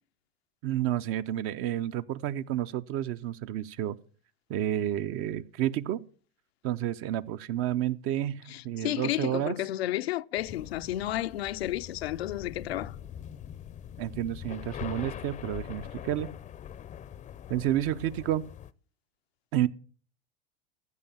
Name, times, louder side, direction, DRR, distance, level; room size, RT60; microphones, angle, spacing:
voice 1, 0.6-4.0 4.5-6.0 6.6-9.6 14.0-16.3 17.5-18.5 19.5-19.7, right 12 dB, 45° right, 0.7 m, -30 dB
voice 2, 8.5-13.0, left 14 dB, 90° left, 0.6 m, -32 dB
sound 1, 10.4-18.7, left 10 dB, 25° left, 0.5 m, -43 dB
15.0 x 5.3 x 7.1 m
hypercardioid pair, 105°, 30 cm